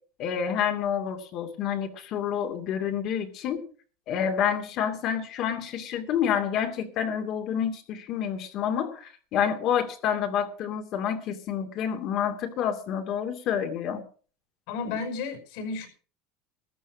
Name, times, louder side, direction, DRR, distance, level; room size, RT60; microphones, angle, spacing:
voice 1, 0.2-3.6 4.1-14.0 14.9-15.0, left 8 dB, 50° left, 6 dB, 2.6 m, -28 dB
voice 2, 14.7-15.9, left 4 dB, 70° left, 7 dB, 5.6 m, -32 dB
14.0 x 10.5 x 6.3 m, 0.41 s
supercardioid pair, 140°, 0 cm